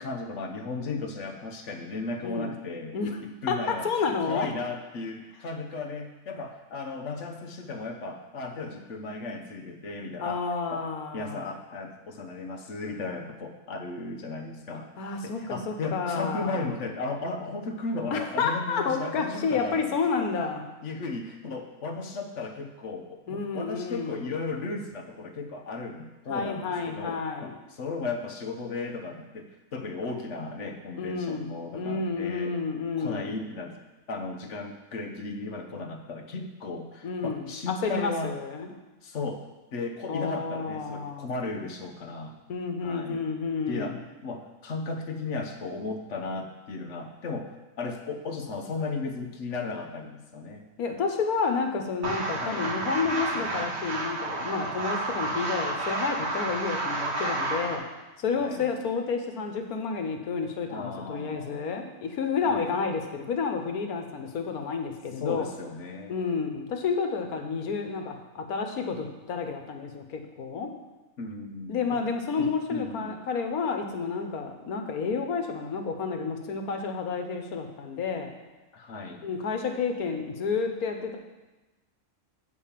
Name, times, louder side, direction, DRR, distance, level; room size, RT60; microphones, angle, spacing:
voice 1, 0.0-3.0 3.2-3.9 4.2-10.4 10.7-10.8 11.1-14.9 15.2-20.3 20.8-32.5 33.0-33.8 34.1-38.3 39.0-39.4 39.7-42.4 42.8-43.2 43.7-44.0 44.2-50.7 52.4-52.6 58.4-58.7 60.7-61.6 62.4-62.7 65.2-66.1 67.4-67.5 71.2-72.0 72.4-73.2 78.7-79.2, left 3 dB, 55° left, 4 dB, 1.2 m, -35 dB
voice 2, 2.2-2.5 2.9-3.2 3.5-4.5 10.2-11.4 15.0-16.7 18.1-20.6 23.3-24.3 26.3-27.5 31.0-33.3 37.0-38.7 40.1-41.3 42.5-44.0 50.8-57.8 58.2-65.4 66.1-70.7 71.7-78.3 79.2-81.2, left 5 dB, 85° left, 5 dB, 1.5 m, -30 dB
sound 1, 52.0-57.8, right 2 dB, 50° right, 1.5 m, -30 dB
8.5 x 4.8 x 7.4 m, 1.1 s
omnidirectional pair, 1.5 m